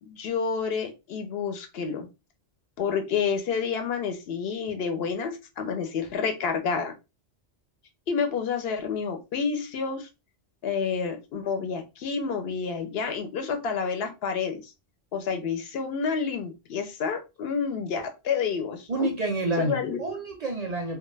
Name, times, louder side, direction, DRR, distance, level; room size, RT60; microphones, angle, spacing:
voice 1, 0.0-2.1 2.8-6.9 8.1-10.1 10.6-14.7 15.1-19.1 19.6-20.0, left 6 dB, 75° left, 0.8 m, -29 dB
voice 2, 18.9-21.0, right 2 dB, 55° right, 0.5 m, -28 dB
2.3 x 2.1 x 3.1 m
omnidirectional pair, 1.1 m